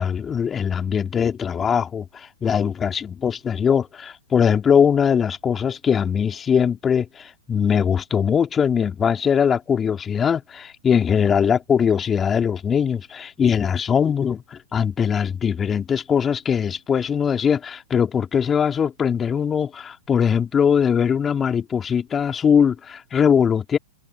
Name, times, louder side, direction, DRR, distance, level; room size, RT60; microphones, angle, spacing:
voice 1, 0.0-23.8, left 7 dB, 20° left, 3.0 m, -21 dB
figure-of-eight pair, 110°, 0 cm